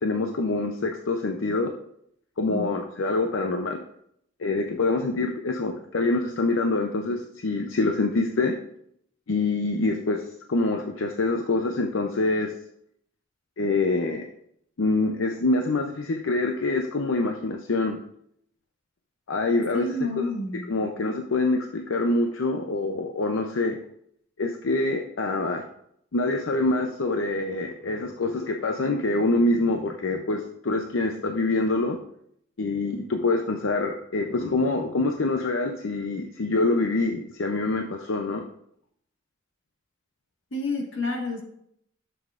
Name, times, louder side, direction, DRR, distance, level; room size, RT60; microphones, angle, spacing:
voice 1, 0.0-1.7 2.4-3.8 4.4-8.5 9.3-12.5 13.6-14.2 14.8-18.0 19.3-20.3 20.7-23.8 24.4-25.6 26.1-32.0 32.6-38.4, left 2 dB, 85° left, 4 dB, 0.6 m, -25 dB
voice 2, 19.7-20.7 40.5-41.4, left 2 dB, 70° left, 1 dB, 1.7 m, -29 dB
11.5 x 7.0 x 2.5 m, 0.72 s
head